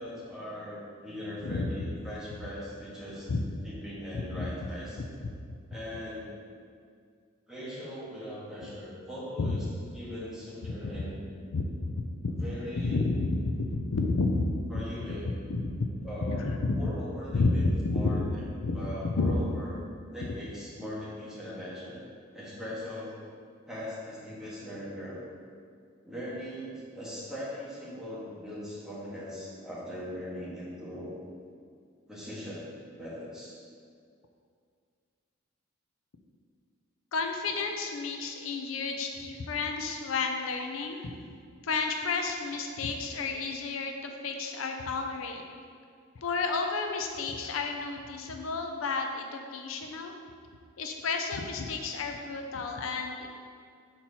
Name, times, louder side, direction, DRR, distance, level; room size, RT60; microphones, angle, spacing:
voice 1, 0.0-3.3 3.6-5.0 5.7-6.3 7.5-9.6 9.9-11.2 12.2-13.0 14.7-15.3 16.0-17.6 17.9-18.4 18.7-19.7 20.1-22.0 22.3-23.1 23.7-25.2 26.0-31.1 32.1-32.7 32.9-33.6, equal, 5° right, -9 dB, 1.5 m, -40 dB
voice 2, 4.1-4.5 9.4-9.5 10.9-11.0 11.5-12.4 12.8-14.8 15.2-15.9 16.3-16.9 17.3-18.3 18.6-19.4 37.1-41.1 41.6-45.4 46.2-50.1 50.8-53.3, left 3 dB, 80° left, 4 dB, 0.5 m, -31 dB
4.4 x 4.4 x 5.5 m, 2.2 s
head